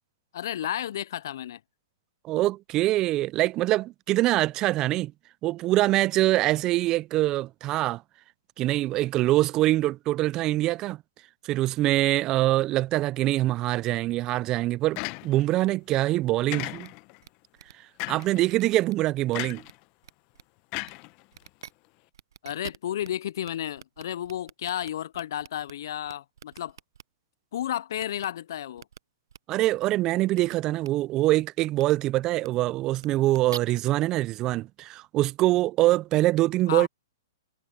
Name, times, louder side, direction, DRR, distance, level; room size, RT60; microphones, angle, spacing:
voice 1, 0.3-1.6 22.4-26.7 27.5-28.8 36.7-36.9, left 11 dB, 60° left, 0.4 m, -32 dB
voice 2, 2.2-5.1 5.4-8.0 8.6-11.0 11.4-16.9 18.1-19.6 29.5-36.9, right 16 dB, 25° right, 0.3 m, -24 dB
sound 1, 15.0-15.6 16.5-17.2 18.0-18.4 19.3-19.8 20.7-21.6, left 24 dB, 35° left, 0.9 m, -35 dB
sound 2, 16.8-16.9 17.2-17.3 17.6-17.7 18.2-18.9 19.3-19.7 20.0-20.4 20.8-20.9 21.3-21.7 22.1-23.1 23.4-23.5 23.8-25.7 26.0-27.0 28.0-28.3 28.8-29.0 29.3-29.4 30.3-30.5 30.8-30.9 31.7-31.9 32.3-32.5 32.9-33.6, right 8 dB, 75° right, 0.7 m, -44 dB
hypercardioid pair, 145°, 2 cm